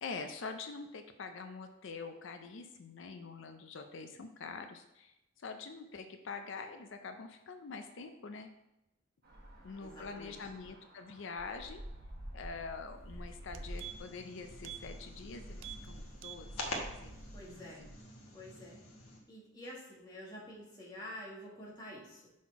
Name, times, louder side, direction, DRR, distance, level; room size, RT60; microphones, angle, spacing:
voice 1, 0.0-8.5 9.6-11.8 12.3-17.2 17.5-17.9, left 4 dB, 60° left, 7 dB, 0.5 m, -45 dB
sound 1, 9.2-18.1, equal, 45° right, 1.3 m, -49 dB
voice 2, 9.8-10.4 17.3-17.8 18.3-18.8 19.3-22.3, equal, 20° left, -6 dB, 1.7 m, -48 dB
sound 2, 12.9-13.0 13.4-14.2 14.6-14.8 15.1-15.3 15.6-15.9 16.1-16.9 17.3-17.4, right 11 dB, 65° right, 0.4 m, -47 dB
sound 3, 13.7-19.2, left 2 dB, 85° left, 1.3 m, -47 dB
5.8 x 4.2 x 4.7 m, 0.90 s
head